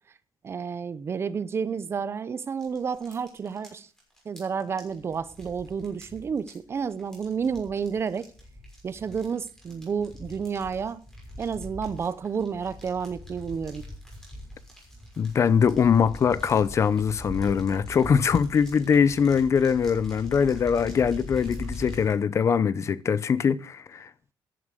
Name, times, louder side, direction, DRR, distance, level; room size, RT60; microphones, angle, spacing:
voice 1, 0.4-3.9 4.3-8.3 8.8-11.0 11.4-13.8, right 6 dB, 30° right, 0.7 m, -30 dB
sound 1, 2.6-22.1, left 1 dB, 5° left, 6.1 m, -42 dB
voice 2, 15.2-24.1, left 6 dB, 35° left, 0.7 m, -22 dB
13.5 x 11.0 x 6.6 m
cardioid pair, 180°, 8 cm